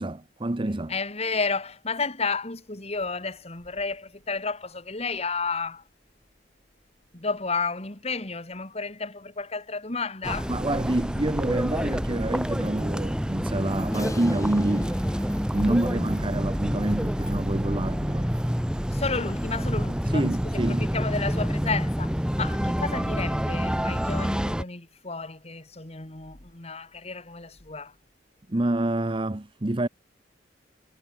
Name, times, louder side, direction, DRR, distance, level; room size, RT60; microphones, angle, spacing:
voice 1, 0.0-0.9 10.5-14.9 15.5-18.3 20.1-20.9 28.5-29.9, right 1 dB, 25° right, 0.8 m, -27 dB
voice 2, 0.9-5.8 7.1-10.5 18.9-27.9, left 4 dB, 35° left, 2.3 m, -32 dB
sound 1, 10.2-24.6, equal, 5° right, 1.6 m, -28 dB
Crash cymbal, 13.9-18.5, left 1 dB, 20° left, 4.0 m, -43 dB
head